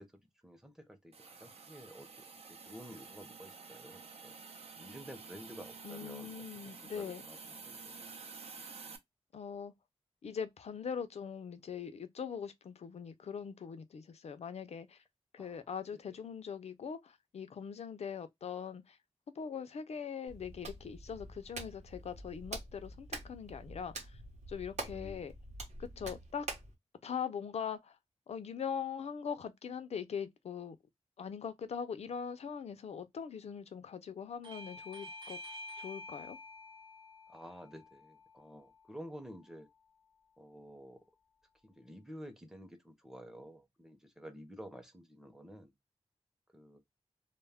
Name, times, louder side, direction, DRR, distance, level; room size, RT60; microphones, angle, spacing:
voice 1, 0.0-4.3 4.8-8.1 15.4-16.2 24.9-25.3 37.3-39.7 40.4-41.0 41.6-45.7 46.5-46.8, equal, 5° right, 0.6 m, -51 dB
Hiss, 1.1-9.0, right 5 dB, 65° right, 0.5 m, -50 dB
voice 2, 5.8-7.2 9.3-9.7 10.2-15.0 15.3-19.0 19.4-24.2 24.5-25.3 25.8-26.5 27.0-28.0 28.3-30.8 31.2-35.4 35.8-36.4, left 7 dB, 70° left, 0.4 m, -41 dB
Hands, 20.3-26.7, right 2 dB, 90° right, 0.9 m, -46 dB
Bell / Doorbell, 34.4-39.6, left 2 dB, 50° right, 0.9 m, -50 dB
2.2 x 2.1 x 3.3 m
wide cardioid pair, 95°, 11 cm